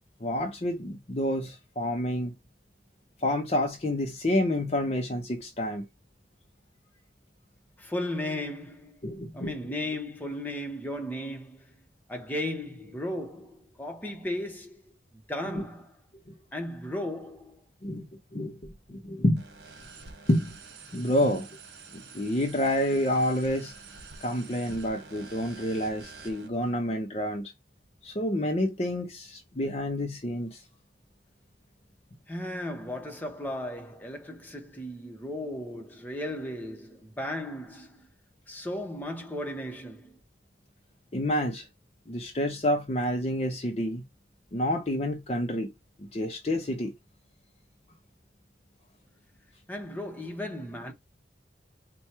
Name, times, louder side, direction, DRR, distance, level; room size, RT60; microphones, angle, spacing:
voice 1, 0.2-2.3 3.2-5.9 9.0-9.5 15.5-15.6 16.3-16.4 17.8-19.4 20.3-20.6 20.9-21.6 21.9-23.7 24.2-27.5 28.0-30.6 41.1-41.7 42.1-44.0 44.5-45.7 46.0-46.9, left 1 dB, 35° left, 0.6 m, -29 dB
voice 2, 7.8-9.0 9.3-11.7 12.1-14.9 15.3-15.9 16.5-17.6 32.3-38.1 38.5-40.2 49.7-50.9, left 1 dB, 10° left, 0.9 m, -35 dB
sound 1, 19.4-26.5, right 4 dB, 65° right, 1.3 m, -47 dB
4.4 x 2.3 x 4.4 m
head